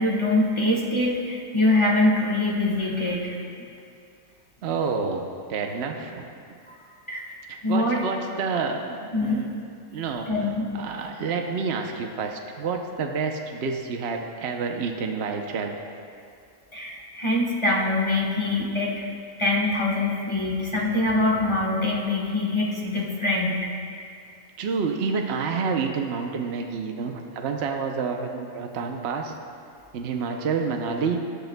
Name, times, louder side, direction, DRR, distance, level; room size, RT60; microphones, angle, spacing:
voice 1, 0.0-3.4 7.1-7.3 7.6-8.0 9.1-9.4 10.3-10.7 16.7-19.1 19.4-23.7, left 2 dB, 20° left, -4 dB, 1.3 m, -24 dB
voice 2, 4.6-6.2 7.5-9.5 9.9-10.3 10.7-15.8 24.6-29.3 29.9-31.2, right 5 dB, 55° right, 3 dB, 0.9 m, -28 dB
18.0 x 10.5 x 2.2 m, 2.4 s
omnidirectional pair, 1.4 m